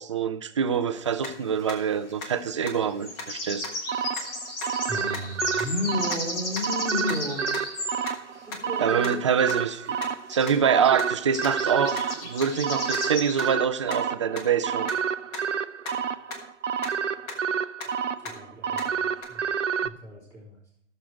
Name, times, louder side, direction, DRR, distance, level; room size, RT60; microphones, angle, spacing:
voice 1, 0.0-3.7 8.8-10.0 10.3-12.0 12.2-14.9, right 7 dB, 25° right, 11 dB, 0.4 m, -25 dB
sound 1, 0.7-0.8 1.2-1.3 1.7-1.8 2.2-2.3 2.7-2.8 3.2-3.3 3.6-3.7 4.2-4.3 4.6-4.7 5.1-5.2 5.6-5.7 6.1-6.2 6.6-6.7 7.1-7.2 7.5-7.6 8.1-8.2 8.5-8.6 9.0-9.1 9.5-9.6 10.0-10.1 10.5-10.6 11.0-11.1 11.4-11.5 12.0-12.1 12.4-12.5 12.9-13.0 13.4-13.5 13.9-14.0 14.4-14.5 14.9-15.0 15.3-15.4 15.8-15.9 16.3-16.4 16.8-16.9 17.3-17.4 17.8-17.9 18.2-18.3 18.7-18.8 19.2-19.3, left 3 dB, 25° left, 1.4 m, -35 dB
sound 2, 0.9-1.0 2.8-8.0 9.7-9.8 10.0-10.1 10.3-10.5 10.8-11.0 11.3-13.5, left 2 dB, 50° left, 3.4 m, -35 dB
sound 3, 3.9-19.9, right 7 dB, 85° right, 0.6 m, -30 dB
voice 2, 4.8-7.5 8.5-9.4 17.9-20.6, left 1 dB, 10° left, -5 dB, 3.3 m, -34 dB
14.5 x 6.6 x 4.7 m, 0.70 s
figure-of-eight pair, 135°, 36 cm